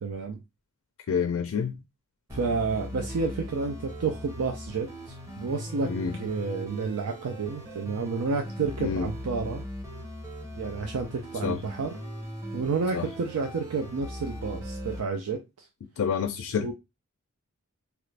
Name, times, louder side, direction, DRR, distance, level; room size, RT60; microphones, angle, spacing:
voice 1, 0.0-0.4 2.3-9.6 10.6-12.0 12.5-15.4 16.6-16.7, right 4 dB, 85° right, 0.5 m, -30 dB
voice 2, 1.1-1.8 5.8-6.2 8.8-9.1 11.4-11.6 12.9-13.1 16.0-16.7, left 6 dB, 65° left, 0.4 m, -28 dB
sound 1, 2.3-15.0, equal, 15° right, 0.8 m, -39 dB
2.9 x 2.5 x 3.2 m
head